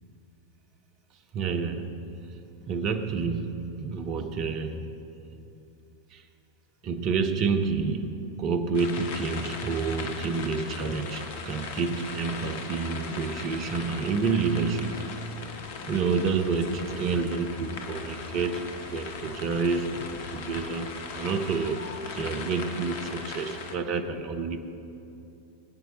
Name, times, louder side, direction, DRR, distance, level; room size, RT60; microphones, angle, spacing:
voice 1, 1.3-4.9 6.1-6.2 6.8-15.1 15.8-24.6, right 4 dB, 40° right, 8 dB, 1.0 m, -29 dB
sound 1, 8.7-23.8, left 4 dB, 55° left, 1.1 m, -39 dB
21.0 x 9.5 x 3.2 m, 2.7 s
figure-of-eight pair, 90°, 0 cm